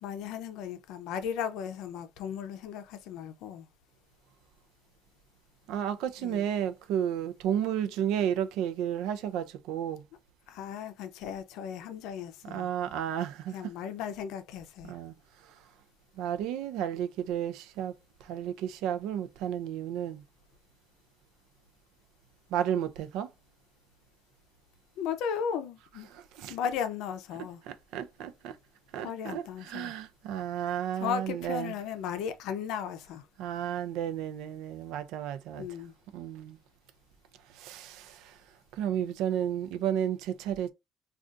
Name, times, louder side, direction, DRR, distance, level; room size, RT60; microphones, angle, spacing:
voice 1, 0.0-3.7 6.2-6.4 10.5-12.7 13.5-15.0 25.0-26.1 26.5-27.6 29.0-29.9 31.0-33.2 35.6-35.9, left 8 dB, 80° left, 0.5 m, -36 dB
voice 2, 5.7-10.0 12.4-13.7 14.9-15.1 15.5-15.6 16.2-17.9 18.2-20.2 22.5-23.3 26.1-26.6 27.7-28.6 28.9-31.8 33.4-35.7 36.1-36.6 37.5-38.4 38.7-40.7, right 9 dB, 80° right, 0.4 m, -32 dB
2.6 x 2.4 x 3.6 m
cardioid pair, 155°, 0 cm